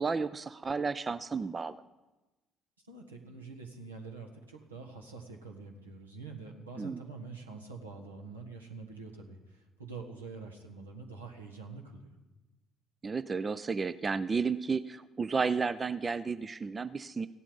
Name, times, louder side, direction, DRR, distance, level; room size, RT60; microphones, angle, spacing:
voice 1, 0.0-1.7 6.8-7.0 13.0-17.3, right 5 dB, 30° right, 14 dB, 0.4 m, -32 dB
voice 2, 2.9-12.1, right 4 dB, 85° right, 1 dB, 1.5 m, -46 dB
16.0 x 11.5 x 5.4 m, 1.1 s
figure-of-eight pair, 50°, 0 cm